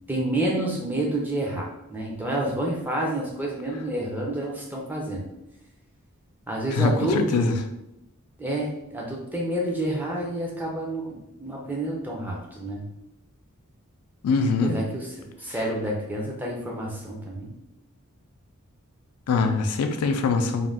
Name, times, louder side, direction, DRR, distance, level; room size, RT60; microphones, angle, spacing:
voice 1, 0.1-5.2 6.5-7.5 8.4-12.9 14.6-15.1 15.4-17.5, right 1 dB, 10° right, -2 dB, 0.4 m, -29 dB
voice 2, 6.7-7.5 14.2-14.8 19.3-20.7, left 4 dB, 85° left, 7 dB, 0.3 m, -23 dB
2.5 x 2.2 x 3.3 m, 0.88 s
head